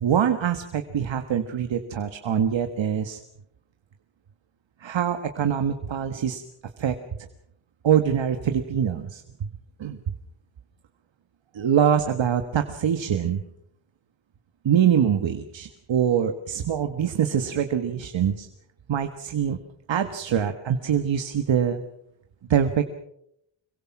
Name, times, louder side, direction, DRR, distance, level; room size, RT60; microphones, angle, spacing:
voice 1, 0.0-3.2 4.8-6.4 6.8-7.0 7.8-9.2 9.8-10.0 11.5-13.4 14.6-18.5 18.9-19.6 19.9-21.8 22.5-22.8, right 8 dB, 80° right, 7 dB, 1.5 m, -24 dB
26.0 x 23.0 x 6.0 m, 0.75 s
wide cardioid pair, 120°, 45 cm